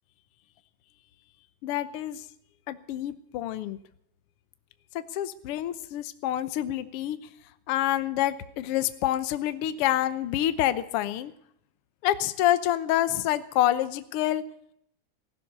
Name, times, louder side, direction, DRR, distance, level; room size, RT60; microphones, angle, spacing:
voice 1, 1.6-2.2 2.7-3.8 4.9-7.2 7.7-11.3 12.0-14.4, left 13 dB, 75° left, 13 dB, 1.3 m, -27 dB
15.5 x 12.0 x 6.6 m, 0.71 s
omnidirectional pair, 3.7 m